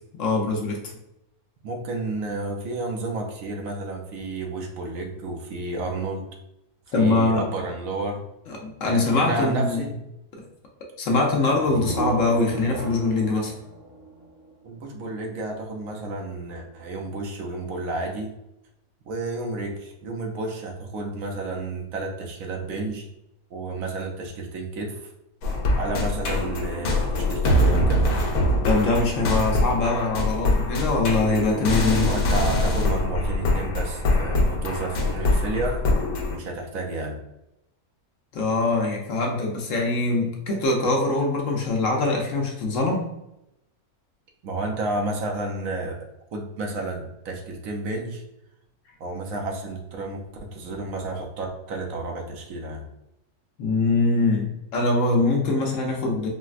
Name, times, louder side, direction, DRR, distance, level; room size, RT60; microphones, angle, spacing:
voice 1, 0.2-0.9 6.9-7.5 8.5-9.8 11.0-13.5 28.6-32.1 38.3-43.1 53.6-56.3, left 3 dB, 65° left, 0 dB, 0.9 m, -23 dB
voice 2, 1.6-6.3 6.9-8.3 8.8-9.9 14.6-18.3 19.1-23.1 23.5-25.1 25.8-28.2 32.0-35.9 36.3-37.2 44.4-46.0 46.3-48.2 49.0-52.9, right 2 dB, 70° right, 1 dB, 1.0 m, -31 dB
sound 1, 11.4-15.1, right 2 dB, 50° right, 1.0 m, -35 dB
sound 2, 25.4-36.4, left 1 dB, 90° left, 1.2 m, -23 dB
4.0 x 2.0 x 2.4 m, 0.86 s
omnidirectional pair, 1.6 m